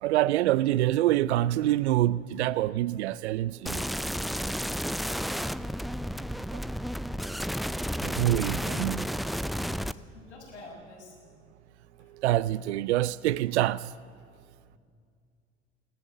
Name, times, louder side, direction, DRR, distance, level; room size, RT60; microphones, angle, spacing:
voice 1, 0.0-3.9 6.5-6.6 8.0-9.1 12.1-13.9, right 14 dB, 75° right, 0.5 m, -26 dB
sound 1, 3.7-9.9, equal, ahead, 0.5 m, -32 dB
voice 2, 8.3-8.8 10.1-11.3 12.0-12.1, left 2 dB, 85° left, 6.4 m, -48 dB
21.0 x 18.5 x 8.2 m
figure-of-eight pair, 65°, 34 cm